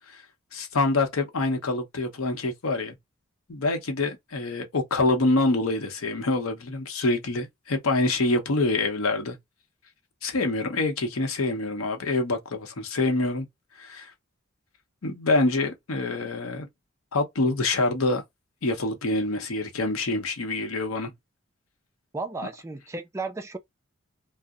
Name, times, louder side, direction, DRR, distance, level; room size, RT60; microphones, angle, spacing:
voice 1, 0.5-3.0 3.5-9.4 10.2-13.5 13.8-14.1 15.0-16.7 17.1-18.2 18.6-21.1, left 2 dB, 90° left, 0.7 m, -26 dB
voice 2, 22.1-23.6, right 3 dB, 15° right, 0.3 m, -34 dB
2.7 x 2.0 x 2.2 m
head